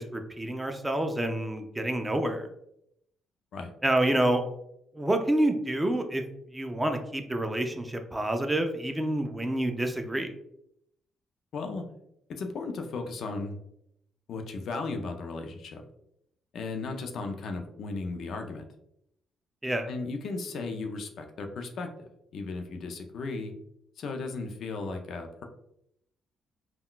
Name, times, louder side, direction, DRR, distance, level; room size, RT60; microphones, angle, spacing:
voice 1, 0.0-2.5 3.8-4.4 4.9-6.2 6.5-10.3 19.6-19.9, right 1 dB, 15° right, 5 dB, 0.4 m, -28 dB
voice 2, 11.5-11.8 12.3-13.6 14.3-15.8 16.5-18.7 19.9-21.9 22.3-23.5 24.0-25.4, left 3 dB, 65° left, 5 dB, 0.4 m, -35 dB
3.6 x 2.2 x 2.3 m, 0.77 s
cardioid pair, 90°, 0 cm